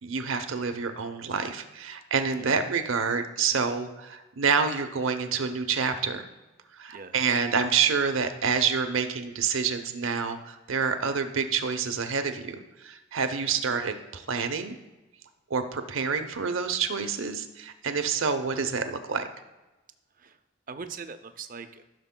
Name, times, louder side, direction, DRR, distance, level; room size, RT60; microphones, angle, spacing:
voice 1, 0.0-6.3 6.8-14.8 15.5-19.3, right 5 dB, 75° right, 8 dB, 0.7 m, -28 dB
voice 2, 6.9-7.4 20.2-20.3 20.7-21.8, right 5 dB, 40° right, 9 dB, 0.5 m, -41 dB
14.0 x 6.5 x 2.2 m, 1.1 s
head